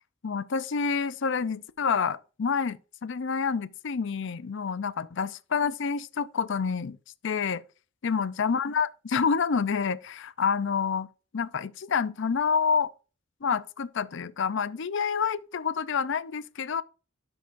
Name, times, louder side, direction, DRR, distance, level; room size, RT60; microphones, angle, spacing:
voice 1, 0.2-7.0 7.2-7.6 8.0-11.1 11.3-12.9 13.4-16.8, left 6 dB, 60° left, 0.5 m, -28 dB
12.0 x 6.0 x 2.5 m
head